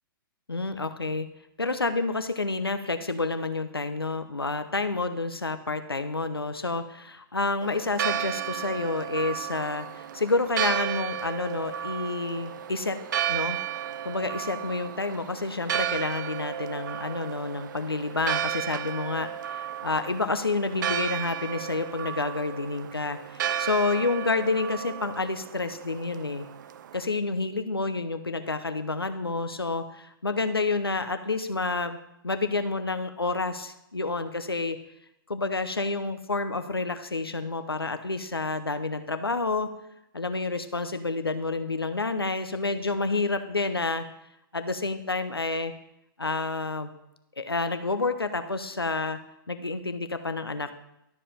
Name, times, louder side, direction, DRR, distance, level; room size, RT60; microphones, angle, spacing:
voice 1, 0.5-1.3 1.6-13.0 13.3-13.6 14.0-26.5 26.9-32.0 32.2-34.8 35.3-39.7 40.1-44.1 44.5-45.7 46.2-46.9 47.4-49.2 49.5-50.7, left 3 dB, 90° left, 10 dB, 0.8 m, -29 dB
Church bell, 7.6-27.0, right 10 dB, 55° right, 0.5 m, -33 dB
12.5 x 5.0 x 5.6 m, 0.84 s
figure-of-eight pair, 115°, 12 cm